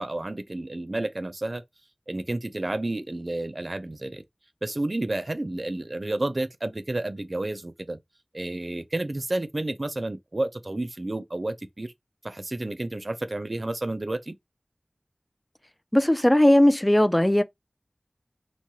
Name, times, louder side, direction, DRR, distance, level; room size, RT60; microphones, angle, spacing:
voice 1, 0.0-1.6 2.1-4.2 4.6-8.0 8.3-11.9 12.2-14.3, right 2 dB, 50° right, 0.4 m, -31 dB
voice 2, 15.9-17.4, left 1 dB, 20° left, 0.3 m, -18 dB
3.0 x 2.2 x 2.7 m
wide cardioid pair, 45°, 0 cm